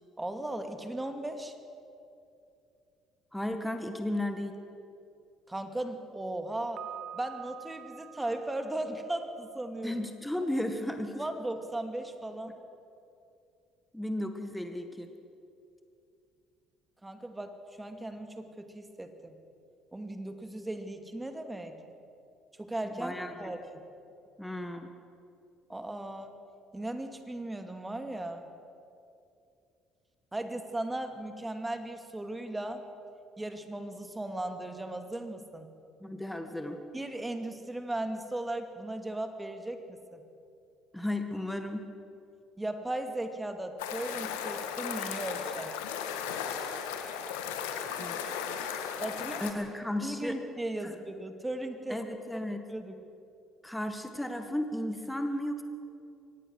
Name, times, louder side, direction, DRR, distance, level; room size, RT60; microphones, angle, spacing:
voice 1, 0.2-1.5 5.5-6.8 7.1-9.9 11.1-12.6 17.0-19.4 19.9-21.8 22.6-23.8 25.7-26.3 26.7-28.5 30.3-32.8 33.4-35.7 36.9-40.2 42.6-45.7 49.0-49.5 50.0-52.0 52.7-53.0, right 1 dB, 15° right, 7 dB, 2.4 m, -37 dB
voice 2, 3.3-4.5 9.8-11.2 13.9-15.1 22.8-23.5 24.4-24.9 36.0-36.8 40.9-41.9 47.9-48.2 49.4-50.4 50.8-50.9 51.9-52.6 53.6-55.6, left 1 dB, 5° left, 6 dB, 1.7 m, -34 dB
Piano, 6.8-9.7, right 11 dB, 55° right, 0.8 m, -47 dB
sound 1, 43.8-49.5, left 7 dB, 75° left, 1.7 m, -36 dB
23.5 x 18.5 x 6.4 m, 2.6 s
hypercardioid pair, 55°, 0 cm